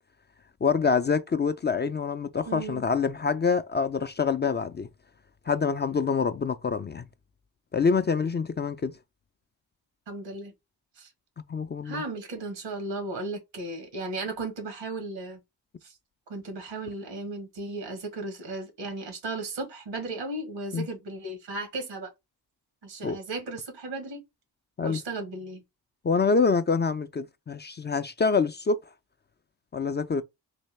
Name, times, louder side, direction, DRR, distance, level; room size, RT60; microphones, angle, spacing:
voice 1, 0.6-4.9 5.5-7.1 7.7-8.9 11.5-12.0 20.7-20.9 23.0-23.2 24.8-25.0 26.0-28.8 29.7-30.2, left 5 dB, 25° left, 0.3 m, -26 dB
voice 2, 2.5-2.8 10.1-10.5 11.0-11.1 11.8-15.4 15.8-15.9 16.3-22.1 22.8-24.2 24.8-25.6, right 2 dB, 85° right, 1.3 m, -35 dB
3.3 x 2.7 x 3.1 m
supercardioid pair, 45°, 43 cm